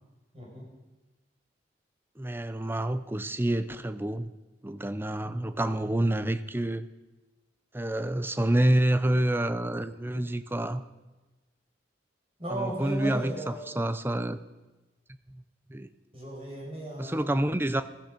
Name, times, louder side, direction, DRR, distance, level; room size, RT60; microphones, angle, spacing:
voice 1, 0.3-0.7 12.4-13.8 16.1-17.4, right 1 dB, 35° right, -3 dB, 5.5 m, -36 dB
voice 2, 2.2-4.3 4.6-6.9 7.7-10.8 12.5-14.4 15.3-15.4 15.7-15.9 17.0-17.9, right 1 dB, 10° right, 13 dB, 0.6 m, -28 dB
15.0 x 15.0 x 5.2 m, 1.1 s
head